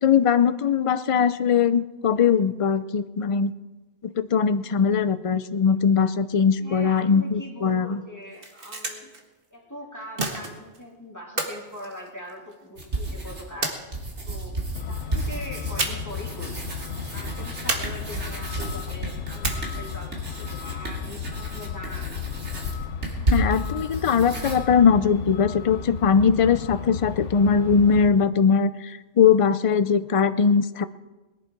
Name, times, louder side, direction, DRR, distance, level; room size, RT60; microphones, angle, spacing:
voice 1, 0.0-3.5 4.0-8.0 23.3-30.8, left 6 dB, 45° left, 12 dB, 0.4 m, -20 dB
voice 2, 6.6-9.1 9.5-13.8 14.2-14.6 14.9-16.6 17.1-22.1, left 1 dB, 15° left, -2 dB, 2.8 m, -41 dB
sound 1, 8.2-9.2 10.2-10.8 11.4-12.6 13.6-14.4 15.8-16.2 16.5-16.6 17.7-18.4 19.4-20.0, right 2 dB, 50° right, 1.7 m, -31 dB
sound 2, 12.8-13.6 13.9-24.6, right 2 dB, 65° right, 2.9 m, -32 dB
Truck, 14.8-28.1, left 9 dB, 75° left, 1.1 m, -35 dB
20.5 x 11.0 x 4.6 m, 1.2 s
omnidirectional pair, 1.2 m